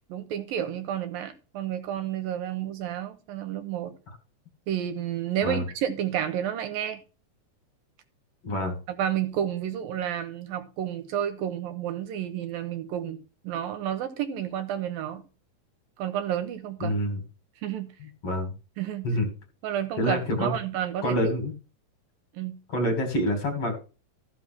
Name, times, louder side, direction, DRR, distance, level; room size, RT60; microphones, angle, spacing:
voice 1, 0.1-3.9 4.7-7.0 8.9-15.2 16.0-17.0 17.6-17.9 18.8-19.1 19.6-21.3 22.3-22.6, right 10 dB, 75° right, 2.7 m, -31 dB
voice 2, 8.4-8.7 16.8-17.2 18.2-18.5 19.0-19.3 20.0-20.6 21.0-21.5 22.7-23.8, equal, 40° left, 3.0 m, -26 dB
13.5 x 5.8 x 6.0 m
omnidirectional pair, 4.4 m